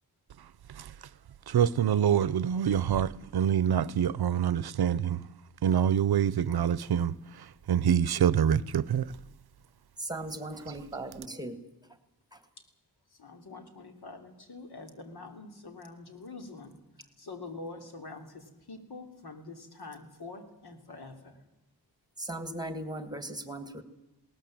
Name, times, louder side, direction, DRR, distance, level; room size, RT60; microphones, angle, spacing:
voice 1, 1.5-5.2 5.6-9.2, right 9 dB, 75° right, 0.7 m, -26 dB
voice 2, 10.0-11.6 12.3-12.4 22.2-23.8, right 1 dB, 10° right, 1.6 m, -38 dB
voice 3, 13.1-16.8 17.2-21.4, left 3 dB, 80° left, 3.0 m, -45 dB
20.5 x 18.0 x 7.6 m
wide cardioid pair, 140°, 38 cm